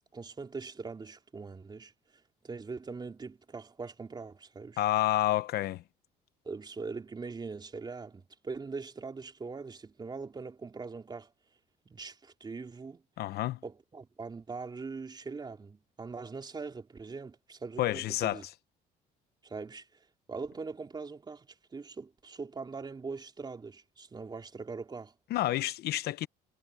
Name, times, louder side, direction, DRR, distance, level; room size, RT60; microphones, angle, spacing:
voice 1, 0.1-1.9 2.4-4.8 6.4-11.3 11.8-13.0 13.6-18.5 19.4-25.1, right 4 dB, 25° right, 3.4 m, -42 dB
voice 2, 4.8-5.8 13.2-13.6 17.8-18.4 25.3-26.3, left 14 dB, 70° left, 0.9 m, -29 dB
cardioid pair, 110°, 17 cm